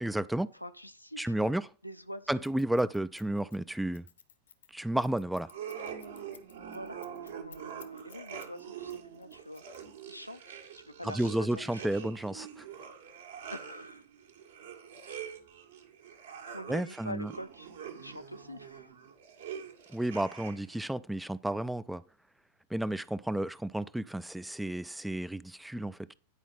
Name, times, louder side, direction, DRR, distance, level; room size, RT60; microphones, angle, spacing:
voice 1, 0.0-0.5 1.2-1.7 2.3-4.0 4.7-5.5 11.0-12.7 16.7-17.3 19.9-22.0 22.7-26.1, right 1 dB, 5° right, 0.3 m, -32 dB
voice 2, 0.5-1.5 1.8-2.4 6.6-9.6 10.1-12.1 13.5-14.0 15.0-15.4 16.5-17.7 18.0-18.9, equal, 90° left, 0.6 m, -45 dB
Scissors, 2.4-8.6 8.9-10.2, left 8 dB, 65° left, 0.9 m, -56 dB
sound 1, 5.4-20.8, right 8 dB, 60° right, 1.5 m, -45 dB
9.9 x 5.0 x 5.3 m
figure-of-eight pair, 90°, 0 cm